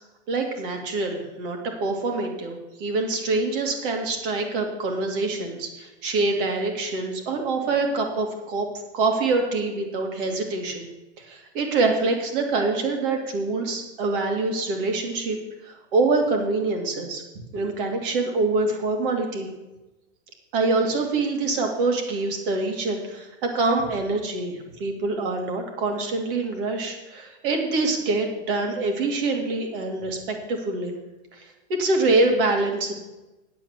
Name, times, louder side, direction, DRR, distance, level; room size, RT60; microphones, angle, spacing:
voice 1, 0.3-8.7 8.9-10.9 11.2-15.4 15.6-17.2 17.5-19.5 20.5-30.9 31.7-32.9, right 3 dB, 50° right, 3 dB, 2.5 m, -25 dB
9.2 x 7.6 x 7.2 m, 1.1 s
supercardioid pair, 170°, 36 cm